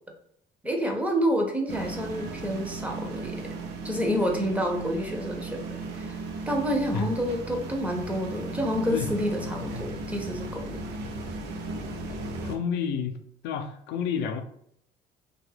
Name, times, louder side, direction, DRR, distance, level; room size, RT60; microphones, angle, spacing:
voice 1, 0.6-3.5 3.8-6.2 6.5-10.8, equal, 10° right, 1 dB, 0.4 m, -29 dB
sound 1, 1.7-12.6, right 2 dB, 80° right, 0.5 m, -36 dB
voice 2, 12.4-13.2 13.4-14.4, left 7 dB, 90° left, 7 dB, 0.4 m, -29 dB
2.8 x 2.2 x 3.2 m, 0.71 s
cardioid pair, 155°, 17 cm